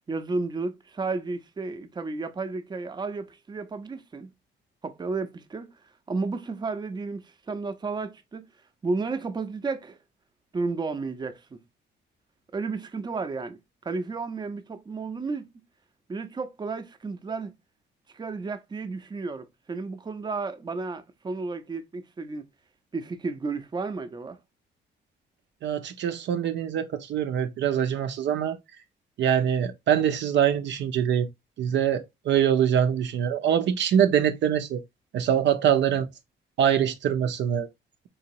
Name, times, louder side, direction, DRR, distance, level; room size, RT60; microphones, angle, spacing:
voice 1, 0.1-4.3 4.8-5.7 6.1-8.5 8.8-10.0 10.5-11.6 12.5-13.6 13.8-15.5 16.1-17.5 18.1-22.4 22.9-24.4, right 3 dB, 20° right, 0.6 m, -32 dB
voice 2, 25.6-28.6 29.2-31.3 31.6-34.8 35.1-36.1 36.6-37.7, right 9 dB, 65° right, 0.5 m, -24 dB
4.0 x 2.9 x 2.7 m
cardioid pair, 90°, 20 cm